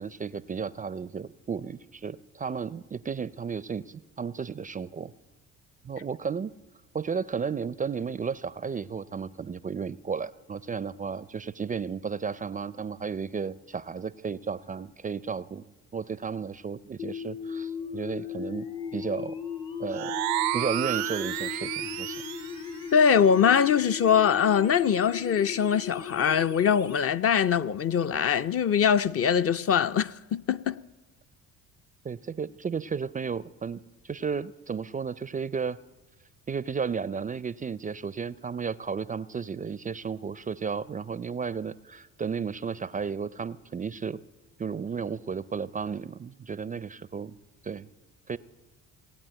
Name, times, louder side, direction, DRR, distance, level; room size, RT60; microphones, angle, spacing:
voice 1, 0.0-5.1 5.8-6.5 6.9-15.6 15.9-19.4 19.8-20.2 20.5-22.2 32.0-35.8 36.5-44.2 44.6-47.3 47.6-47.9 48.3-48.4, right 6 dB, 25° right, 0.4 m, -33 dB
sound 1, 17.0-27.0, left 6 dB, 80° left, 2.2 m, -37 dB
sound 2, 19.9-22.6, right 17 dB, 85° right, 0.5 m, -31 dB
voice 2, 22.9-30.8, left 7 dB, 40° left, 0.5 m, -23 dB
18.5 x 8.8 x 8.9 m
supercardioid pair, 70°, 35 cm